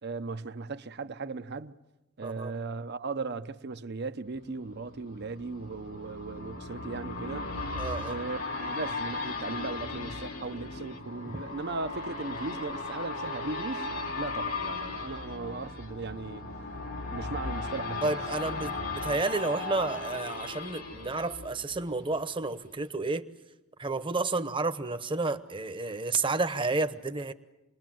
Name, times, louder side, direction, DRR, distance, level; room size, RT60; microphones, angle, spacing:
voice 1, 0.0-1.8 2.2-7.5 8.0-13.9 14.2-16.4 17.1-18.2, right 3 dB, 55° right, 0.8 m, -37 dB
voice 2, 2.2-2.5 7.8-8.2 11.3-11.4 18.0-23.2 23.8-27.3, right 3 dB, 25° right, 1.0 m, -31 dB
sound 1, 4.4-22.2 22.6-22.7, left 3 dB, 85° left, 2.9 m, -37 dB
28.0 x 21.0 x 7.7 m
head